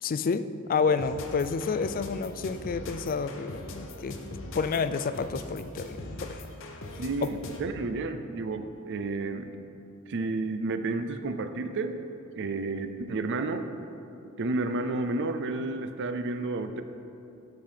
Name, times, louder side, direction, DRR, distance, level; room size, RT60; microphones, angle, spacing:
voice 1, 0.0-4.2 4.5-6.4 6.9-7.3, left 5 dB, 40° left, 12 dB, 0.3 m, -29 dB
sound 1, 1.0-7.8, left 2 dB, 60° left, 0.9 m, -41 dB
voice 2, 7.0-9.5 10.1-12.0 12.3-13.7 14.4-16.8, right 3 dB, 55° right, 9 dB, 0.5 m, -31 dB
13.0 x 5.1 x 5.6 m, 2.8 s
head